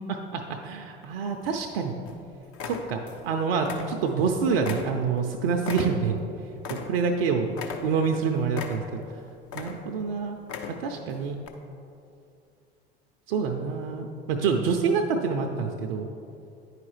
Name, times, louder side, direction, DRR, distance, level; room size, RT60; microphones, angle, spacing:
voice 1, 0.0-1.9 2.6-6.2 6.7-7.5 7.8-9.0 9.5-10.4 10.8-11.4 13.3-16.1, right 5 dB, 70° right, 3 dB, 0.5 m, -27 dB
sound 1, 1.0-1.7 2.1-2.2 2.5-3.3 3.6-4.3 4.6-7.2 7.5-8.2 8.5-9.1 9.4-10.0 10.4-11.0 11.4-11.5, left 6 dB, 50° left, 0.7 m, -37 dB
9.5 x 4.8 x 3.2 m, 2.6 s
hypercardioid pair, 70°, 30 cm